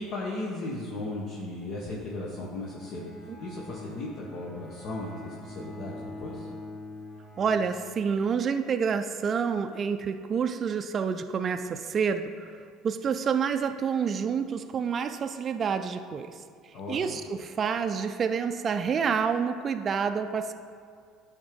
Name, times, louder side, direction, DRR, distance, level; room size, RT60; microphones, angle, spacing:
voice 1, 0.0-3.1 3.4-6.5 16.7-17.2, left 2 dB, 65° left, -4 dB, 1.2 m, -36 dB
Bowed string instrument, 2.6-8.4, left 2 dB, 25° left, 1.0 m, -44 dB
voice 2, 7.4-12.5 12.8-16.4 16.9-20.5, right 6 dB, 40° right, 7 dB, 0.4 m, -28 dB
10.0 x 3.6 x 5.2 m, 2.1 s
supercardioid pair, 100°, 0 cm